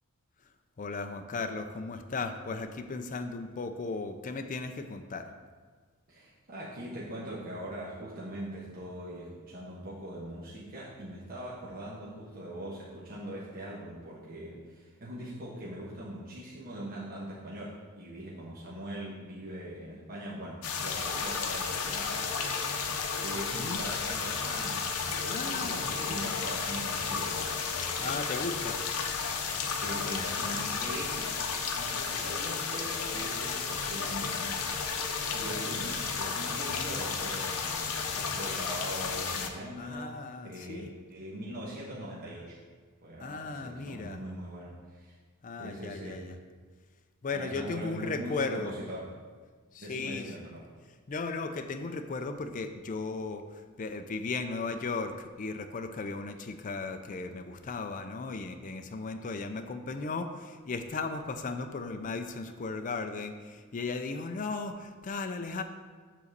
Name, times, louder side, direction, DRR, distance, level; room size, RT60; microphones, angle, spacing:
voice 1, 0.8-5.3 23.3-23.8 25.2-26.4 27.8-28.8 39.8-40.9 43.2-44.2 45.4-46.4 47.2-48.7 49.7-50.3 51.1-65.6, left 3 dB, 35° left, 6 dB, 0.4 m, -36 dB
voice 2, 6.1-28.3 29.7-31.4 31.8-40.2 40.4-42.6 43.0-45.2 45.6-46.3 47.3-49.1 49.8-50.7, right 1 dB, 40° right, -7 dB, 1.2 m, -41 dB
sound 1, 20.6-39.5, left 5 dB, 75° left, 0.8 m, -33 dB
7.4 x 4.1 x 6.6 m, 1.5 s
head